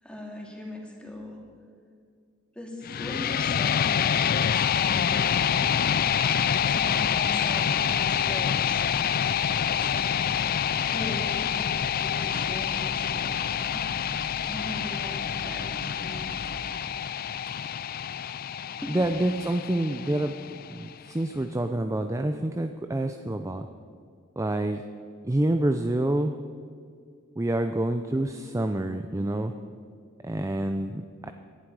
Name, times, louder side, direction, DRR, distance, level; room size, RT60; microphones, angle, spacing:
voice 1, 0.0-1.4 2.5-5.9 6.6-10.2 10.9-11.6 12.0-16.7 18.8-19.0, left 1 dB, 5° left, -1 dB, 2.6 m, -40 dB
sound 1, 2.8-20.8, left 8 dB, 45° left, 0.4 m, -27 dB
sound 2, 4.7-18.8 19.1-19.4 20.0-20.2 21.2-21.3 21.7-22.5 22.9-23.0, right 1 dB, 35° right, 1.0 m, -45 dB
voice 2, 18.8-20.4 20.7-23.7 24.4-24.8 25.2-26.3 27.4-29.5 30.2-31.3, right 1 dB, 15° right, 7 dB, 0.5 m, -27 dB
18.5 x 11.5 x 4.8 m, 2.2 s
head